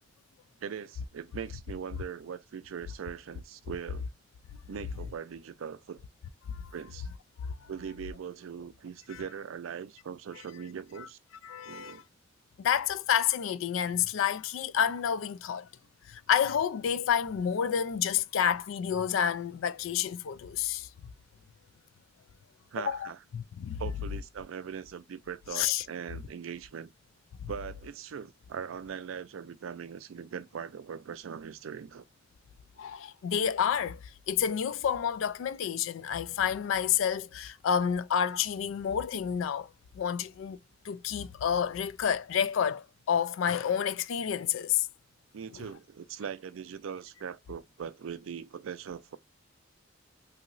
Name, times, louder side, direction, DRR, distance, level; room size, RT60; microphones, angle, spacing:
voice 1, 0.6-4.1 4.7-6.0 6.7-7.1 7.7-11.2 11.7-12.0 22.7-23.2 23.8-26.9 27.5-32.0 45.3-49.2, right 7 dB, 80° right, 0.4 m, -40 dB
voice 2, 11.4-12.0 12.6-15.7 16.1-20.9 22.8-23.8 25.5-25.8 27.4-27.5 32.8-34.0 34.3-39.7 39.9-40.6 40.8-44.9 45.5-45.6, left 8 dB, 75° left, 0.3 m, -29 dB
2.9 x 2.7 x 2.5 m
head